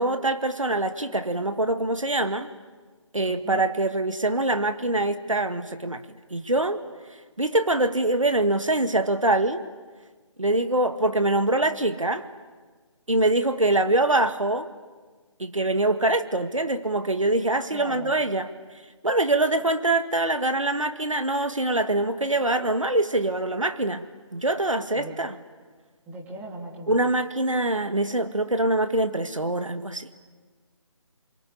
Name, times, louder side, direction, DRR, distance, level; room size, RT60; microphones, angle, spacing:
voice 1, 0.0-2.5 3.1-6.0 6.3-6.8 7.4-9.6 10.4-12.3 13.1-14.7 15.4-18.5 19.0-24.1 24.3-25.3 26.9-30.1, right 2 dB, 80° right, 9 dB, 2.0 m, -24 dB
voice 2, 3.3-3.6 17.7-18.1 24.9-25.2 26.1-27.0, right 2 dB, 10° right, -2 dB, 3.1 m, -39 dB
28.5 x 23.5 x 8.5 m, 1.4 s
figure-of-eight pair, 150°, 16 cm